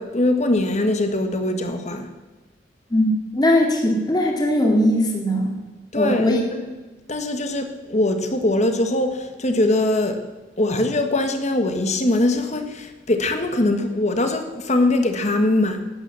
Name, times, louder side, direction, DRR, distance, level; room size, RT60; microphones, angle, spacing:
voice 1, 0.0-2.1 5.9-6.6 7.1-10.3 10.6-15.8, left 1 dB, 40° left, 1.5 m, -22 dB
voice 2, 3.3-5.6 6.0-6.4, left 1 dB, 25° left, 2.1 m, -19 dB
12.0 x 9.1 x 7.5 m
head